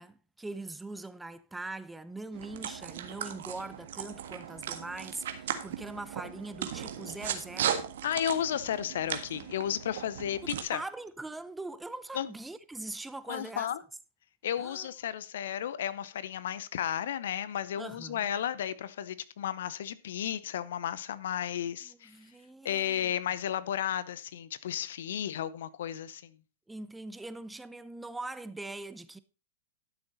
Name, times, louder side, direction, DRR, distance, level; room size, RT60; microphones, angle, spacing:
voice 1, 0.0-7.9 10.4-13.7 14.6-14.9 17.8-18.3 21.8-23.1 26.7-29.2, right 2 dB, 5° right, 0.7 m, -42 dB
sound 1, 2.3-10.6, right 9 dB, 70° right, 1.6 m, -37 dB
voice 2, 8.0-10.8 12.1-12.3 13.3-13.8 14.4-22.2 22.6-26.4, left 10 dB, 70° left, 0.8 m, -33 dB
12.0 x 6.9 x 4.1 m
hypercardioid pair, 115°, 0 cm